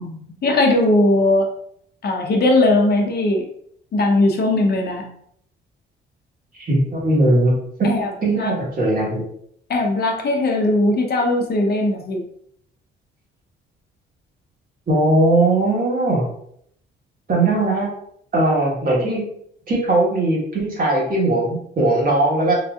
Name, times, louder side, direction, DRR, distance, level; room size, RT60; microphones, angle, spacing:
voice 1, 0.0-1.5 2.0-3.4 3.9-5.1 7.8-8.5 9.7-12.2, left 2 dB, 55° left, 1 dB, 0.8 m, -19 dB
voice 2, 6.6-7.5 7.8-9.2 14.9-16.3 17.3-18.0 18.3-19.2 19.7-22.5, right 2 dB, 45° right, -3 dB, 1.3 m, -19 dB
3.9 x 2.7 x 2.3 m, 0.68 s
cardioid pair, 90°, 20 cm